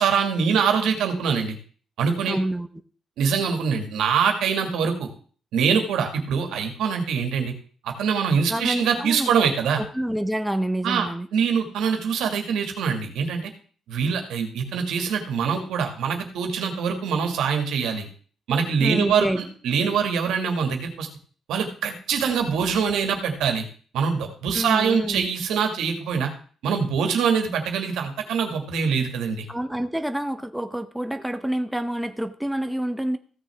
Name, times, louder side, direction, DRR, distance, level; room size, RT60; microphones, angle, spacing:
voice 1, 0.0-1.6 2.0-2.4 3.2-5.1 5.5-7.5 7.8-9.8 10.8-13.5 13.9-18.1 18.5-21.1 21.5-23.7 23.9-26.3 26.6-29.5, right 6 dB, 80° right, 5 dB, 1.9 m, -24 dB
voice 2, 2.3-2.7 8.5-9.3 9.8-11.3 18.8-19.4 24.5-25.3 29.5-33.2, right 1 dB, 5° right, 8 dB, 0.8 m, -28 dB
15.5 x 6.6 x 3.5 m, 0.43 s
cardioid pair, 90°, 0 cm